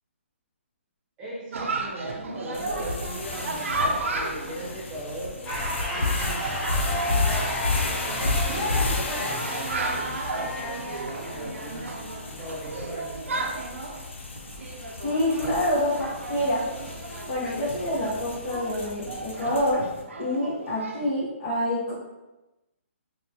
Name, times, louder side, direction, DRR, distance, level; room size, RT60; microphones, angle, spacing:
voice 1, 1.2-5.4 5.9-6.4 6.8-7.5 7.8-11.9 12.3-13.5, equal, 15° right, -8 dB, 0.8 m, -39 dB
Chatter, 1.5-21.1, right 3 dB, 80° right, 0.5 m, -34 dB
sound 1, 2.5-19.9, left 3 dB, 70° left, 0.6 m, -32 dB
sound 2, 5.5-11.6, equal, 10° left, 0.4 m, -33 dB
voice 2, 15.0-16.6 17.3-19.8 20.2-21.9, left 1 dB, 30° left, -11 dB, 1.0 m, -26 dB
3.5 x 2.2 x 2.8 m, 1.0 s
hypercardioid pair, 165°, 7 cm